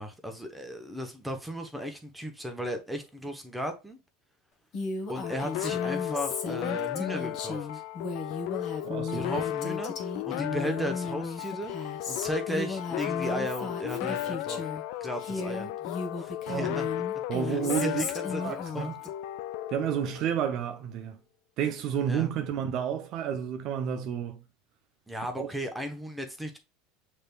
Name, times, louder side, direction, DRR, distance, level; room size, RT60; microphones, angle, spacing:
voice 1, 0.0-4.0 5.1-7.8 9.1-11.7 12.1-14.6 15.0-15.7 16.2-16.9 17.4-18.9 22.1-22.3 25.1-26.6, equal, 5° right, 0.9 m, -35 dB
Female speech woman speaking, 4.7-14.8 15.2-19.1, left 4 dB, 45° left, 1.3 m, -35 dB
sound 1, 5.2-20.6, left 13 dB, 65° left, 0.3 m, -35 dB
voice 2, 8.8-9.3 16.5-16.8 17.3-18.0 18.4-19.0 19.7-21.2 21.6-24.4 25.4-25.5, right 9 dB, 50° right, 0.6 m, -31 dB
6.5 x 3.3 x 2.3 m
supercardioid pair, 115°, 0 cm